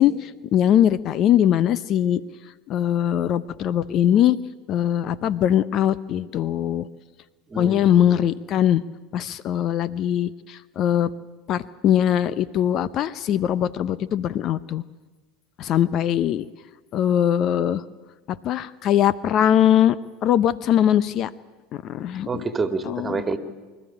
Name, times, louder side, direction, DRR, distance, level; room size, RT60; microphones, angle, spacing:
voice 1, 0.0-2.2 2.7-4.4 4.7-6.9 7.6-8.8 9.1-11.1 11.5-14.8 15.6-16.5 16.9-17.8 18.3-20.0 20.2-21.3 21.7-22.4 22.8-23.2, left 10 dB, 50° left, 18 dB, 0.7 m, -21 dB
voice 2, 7.5-8.1 22.3-23.4, right 4 dB, 20° right, 9 dB, 2.1 m, -28 dB
24.5 x 13.0 x 10.0 m, 1.3 s
hypercardioid pair, 80°, 0 cm